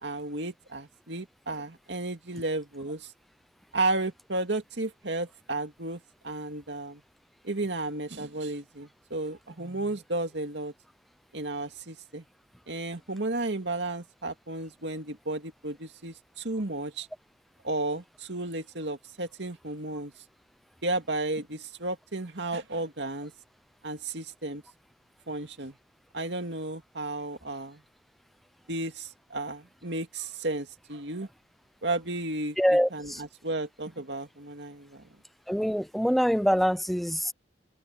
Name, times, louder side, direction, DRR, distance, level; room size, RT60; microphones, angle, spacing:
voice 1, 0.0-3.1 3.7-7.0 7.4-10.7 11.3-12.2 12.7-17.1 17.6-20.1 20.8-23.3 23.8-24.6 25.3-25.7 26.1-27.8 28.7-31.3 31.8-35.0, right 2 dB, 80° right, 2.4 m, -33 dB
voice 2, 32.6-33.2 35.5-37.3, equal, ahead, 0.6 m, -25 dB
head